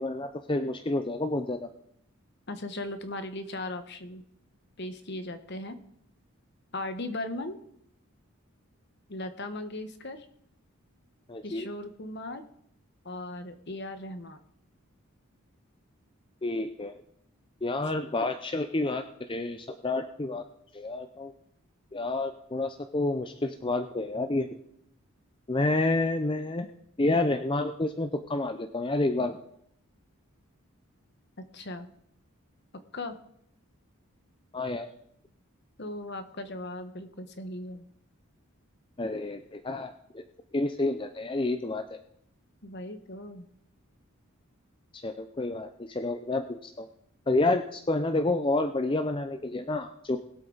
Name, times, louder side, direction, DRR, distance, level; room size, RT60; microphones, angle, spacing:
voice 1, 0.0-1.7 11.3-11.7 16.4-17.0 17.6-20.4 20.7-21.3 21.9-24.5 25.5-26.7 27.0-29.4 34.5-34.9 39.0-40.2 40.5-41.8 44.9-46.9 47.3-50.2, left 2 dB, 25° left, 7 dB, 0.5 m, -29 dB
voice 2, 2.5-4.2 4.8-5.8 6.7-7.6 9.1-10.3 11.4-12.4 13.0-14.4 31.4-31.9 32.9-33.2 35.8-37.8 42.6-43.5, left 1 dB, 50° left, 9 dB, 1.2 m, -38 dB
20.5 x 8.2 x 4.0 m, 0.72 s
head